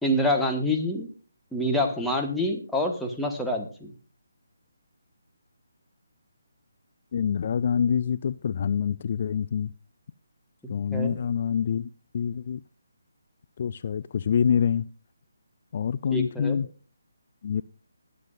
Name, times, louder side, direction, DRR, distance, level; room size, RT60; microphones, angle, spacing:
voice 1, 0.0-1.1 1.5-3.9 10.9-11.2 16.1-16.6, left 1 dB, ahead, 1.4 m, -26 dB
voice 2, 7.1-9.7 10.7-12.6 13.6-14.8 15.7-16.7 17.4-17.6, left 7 dB, 40° left, 0.4 m, -26 dB
20.5 x 7.5 x 2.5 m
figure-of-eight pair, 145°, 0 cm